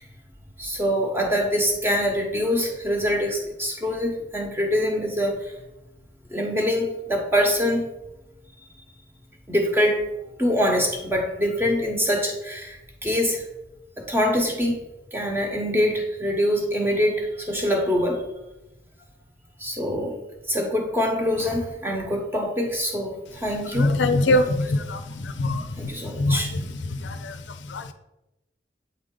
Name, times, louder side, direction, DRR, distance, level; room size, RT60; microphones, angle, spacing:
voice 1, 0.6-5.5 6.3-7.9 9.5-10.0 10.4-13.4 14.0-14.8 15.1-18.2 19.6-20.2 20.5-23.9 24.3-24.5 25.8-26.5, equal, 10° right, 1 dB, 0.9 m, -24 dB
voice 2, 23.8-25.0 25.4-25.6 26.2-26.4 27.7-27.8, left 2 dB, 90° left, 9 dB, 0.6 m, -21 dB
8.1 x 3.7 x 3.8 m, 0.96 s
head